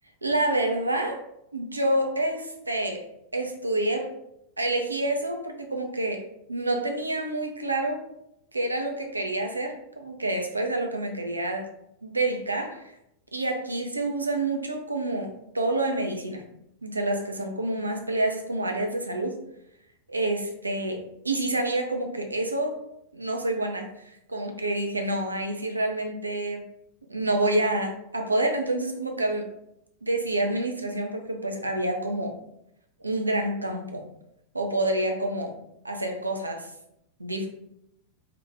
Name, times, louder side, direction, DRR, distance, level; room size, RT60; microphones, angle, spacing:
voice 1, 0.2-1.2 1.5-3.1 3.3-4.1 4.6-8.0 8.5-11.7 12.0-12.9 13.3-16.4 16.8-19.4 20.1-22.8 23.1-23.9 24.3-26.7 27.1-29.5 30.0-32.3 33.0-34.1 34.5-35.5 35.8-36.7 37.2-37.5, right 1 dB, 80° right, 3 dB, 0.4 m, -28 dB
2.8 x 2.1 x 3.3 m, 0.79 s
figure-of-eight pair, 90°, 0 cm